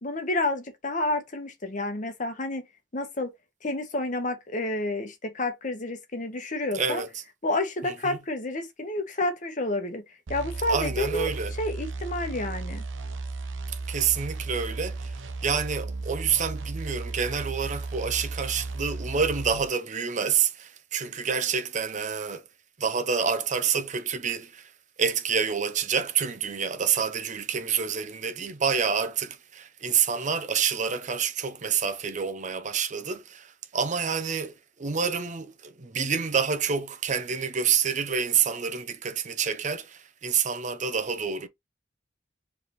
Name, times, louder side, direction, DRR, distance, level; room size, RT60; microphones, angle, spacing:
voice 1, 0.0-2.7 2.9-3.3 3.6-7.0 7.4-10.0 10.3-11.3 11.6-12.8, left 2 dB, 45° left, 1.1 m, -29 dB
voice 2, 6.7-7.1 7.8-8.2 10.7-11.5 13.9-15.1 15.4-22.4 22.8-24.7 25.0-41.5, right 6 dB, 40° right, 0.6 m, -28 dB
sound 1, 10.3-19.7, right 3 dB, 85° right, 0.6 m, -35 dB
4.8 x 3.4 x 3.1 m
head